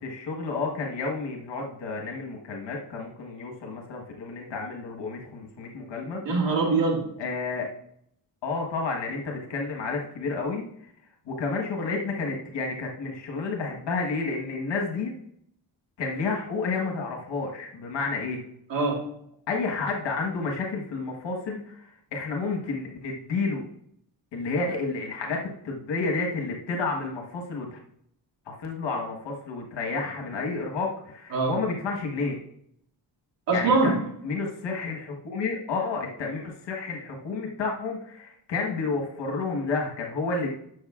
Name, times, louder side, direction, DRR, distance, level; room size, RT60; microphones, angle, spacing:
voice 1, 0.0-6.2 7.2-7.7 8.4-10.6 11.3-15.1 16.0-18.4 19.5-23.6 24.3-27.8 28.5-32.4 33.5-33.9 34.2-40.5, left 4 dB, 80° left, 1 dB, 1.5 m, -30 dB
voice 2, 6.2-7.2 18.7-19.2 31.3-31.6 33.5-34.1, right 3 dB, 90° right, -2 dB, 2.4 m, -23 dB
11.5 x 6.5 x 2.5 m, 0.70 s
wide cardioid pair, 150°, 43 cm